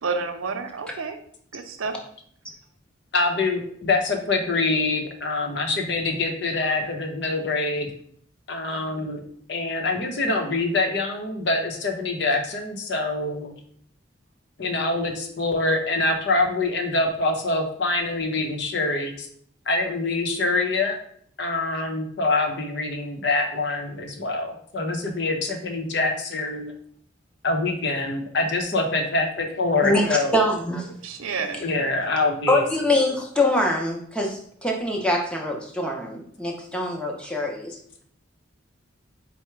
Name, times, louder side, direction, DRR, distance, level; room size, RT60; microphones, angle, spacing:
voice 1, 0.0-1.2 1.5-2.0 31.0-31.7, right 4 dB, 90° right, 6 dB, 0.5 m, -29 dB
voice 2, 3.1-7.9 8.5-9.2 9.5-13.5 14.6-19.3 19.7-21.0 21.4-26.7 27.4-30.4 31.6-32.6, left 2 dB, 55° left, 3 dB, 0.7 m, -25 dB
voice 3, 29.8-30.9 32.5-37.8, left 1 dB, 5° left, 0 dB, 0.6 m, -24 dB
4.6 x 2.1 x 4.4 m, 0.62 s
head